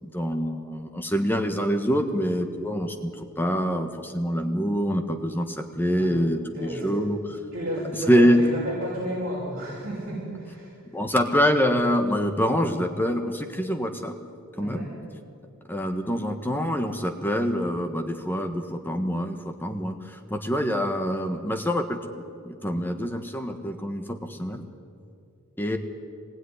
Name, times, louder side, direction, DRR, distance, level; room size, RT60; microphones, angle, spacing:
voice 1, 0.0-3.1 3.4-7.2 8.1-8.5 10.9-14.2 14.6-14.9 15.7-22.0 22.4-24.7 25.6-25.8, equal, 10° left, 5 dB, 1.4 m, -25 dB
voice 2, 6.6-7.0 7.5-10.7 14.6-14.9, right 1 dB, 45° right, -7 dB, 6.5 m, -32 dB
24.0 x 20.5 x 10.0 m, 2.4 s
head